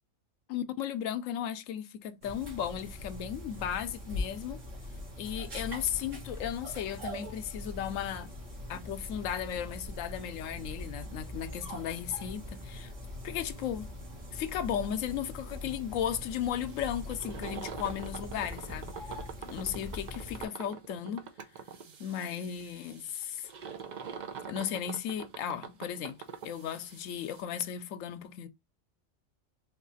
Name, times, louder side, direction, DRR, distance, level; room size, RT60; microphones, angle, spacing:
voice 1, 0.5-4.6 5.2-8.3 8.7-12.9 13.2-13.9 14.3-19.0 19.5-21.2 22.0-23.5 24.5-26.2 26.4-28.5, left 9 dB, 90° left, 1.0 m, -35 dB
sound 1, 2.2-20.5, left 1 dB, 75° right, 1.8 m, -42 dB
sound 2, 16.7-27.4, right 6 dB, 50° right, 0.6 m, -44 dB
4.2 x 2.4 x 3.8 m
omnidirectional pair, 1.3 m